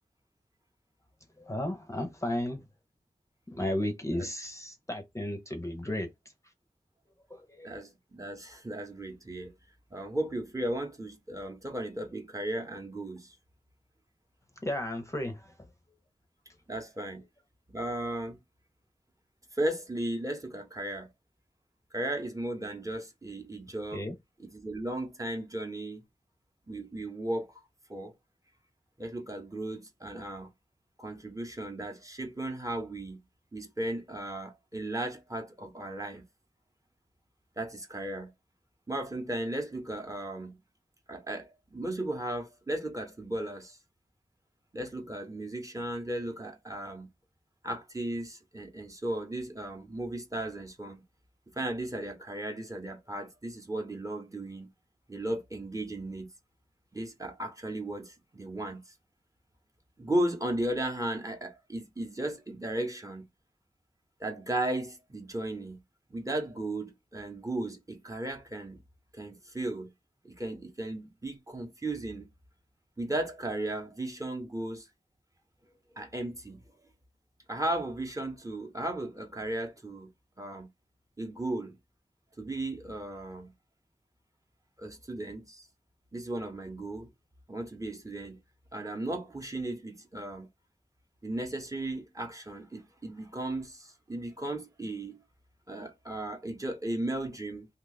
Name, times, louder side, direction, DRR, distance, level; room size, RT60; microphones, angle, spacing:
voice 1, 1.4-2.6 3.5-6.1 7.3-7.7 14.6-15.5 23.9-24.2, left 1 dB, 20° left, 0.6 m, -34 dB
voice 2, 7.6-9.5 9.9-13.3 16.7-17.2 17.7-18.4 19.5-21.1 21.9-24.0 24.4-26.0 26.7-27.5 27.9-28.1 29.0-30.5 31.0-33.2 33.5-36.2 37.6-38.3 38.9-40.6 41.1-43.8 44.7-47.1 47.6-51.0 51.6-54.7 55.1-56.3 56.9-58.9 60.0-63.2 64.2-65.8 66.1-68.8 69.1-69.9 70.2-72.3 73.0-74.9 75.9-76.6 77.5-80.1 80.4-80.7 81.2-81.8 82.4-83.5 84.8-85.7 86.1-87.1 87.5-88.4 88.7-90.5 91.2-95.2 95.7-97.7, right 1 dB, 20° right, 0.8 m, -35 dB
2.8 x 2.3 x 4.0 m
wide cardioid pair, 70°, 15 cm